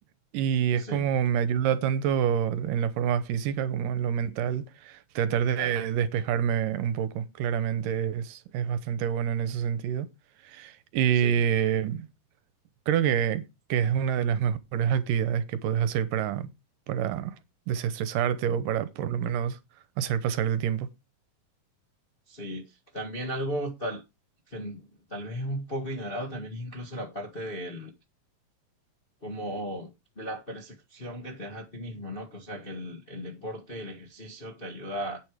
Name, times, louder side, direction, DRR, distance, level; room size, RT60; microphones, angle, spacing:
voice 1, 0.3-10.1 10.5-12.1 12.9-13.4 13.7-16.5 16.9-17.4 17.7-19.6 20.0-20.9, right 9 dB, 75° right, 2.4 m, -27 dB
voice 2, 22.3-24.0 24.5-27.9 29.2-29.9 30.1-35.2, equal, 35° left, 0.9 m, -36 dB
9.1 x 7.7 x 4.9 m
omnidirectional pair, 4.0 m